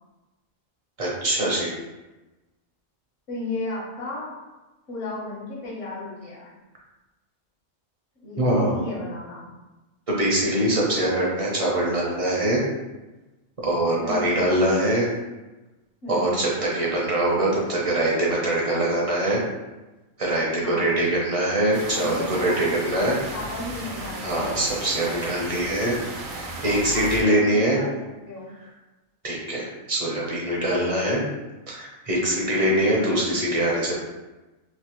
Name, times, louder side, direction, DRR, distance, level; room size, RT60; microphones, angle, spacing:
voice 1, 1.0-1.7 8.4-8.8 10.1-12.6 13.6-15.1 16.1-19.4 20.2-23.2 24.2-26.0 26.3-27.8 29.2-31.2 31.7-33.9, right 1 dB, 35° right, -4 dB, 0.7 m, -23 dB
voice 2, 3.3-4.3 4.9-6.5 8.2-9.4 14.0-14.4 16.0-16.4 20.5-21.0 21.9-24.7 26.6-28.5, left 2 dB, 65° left, -5 dB, 1.3 m, -34 dB
sound 1, 21.7-27.2, right 2 dB, 85° right, 1.1 m, -35 dB
3.2 x 2.7 x 3.0 m, 1.1 s
omnidirectional pair, 1.4 m